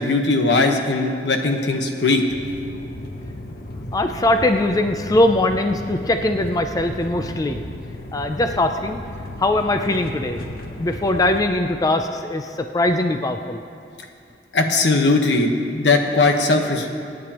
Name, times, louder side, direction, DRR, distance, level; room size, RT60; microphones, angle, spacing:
voice 1, 0.0-2.2 14.5-16.9, left 3 dB, 80° left, 4 dB, 1.2 m, -19 dB
sound 1, 2.3-11.5, left 1 dB, 55° left, 0.9 m, -34 dB
voice 2, 3.9-7.6 8.1-9.0 9.4-10.4 10.8-13.6, left 1 dB, 20° left, 6 dB, 0.4 m, -21 dB
25.0 x 9.5 x 3.0 m, 2.4 s
head